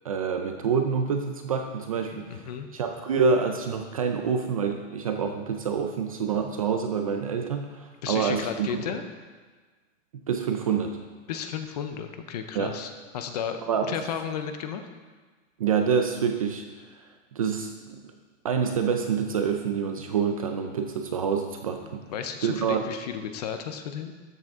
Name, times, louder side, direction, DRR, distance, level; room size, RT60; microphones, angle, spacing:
voice 1, 0.0-8.8 10.3-11.0 12.5-12.8 13.6-14.0 15.6-16.7 17.3-18.0 18.4-22.0 22.4-22.9, right 6 dB, 30° right, 5 dB, 0.4 m, -27 dB
voice 2, 2.1-2.7 8.0-9.0 11.3-14.9 22.1-24.1, left 8 dB, 35° left, 8 dB, 0.6 m, -33 dB
13.5 x 7.8 x 3.6 m, 1.4 s
supercardioid pair, 170°, 38 cm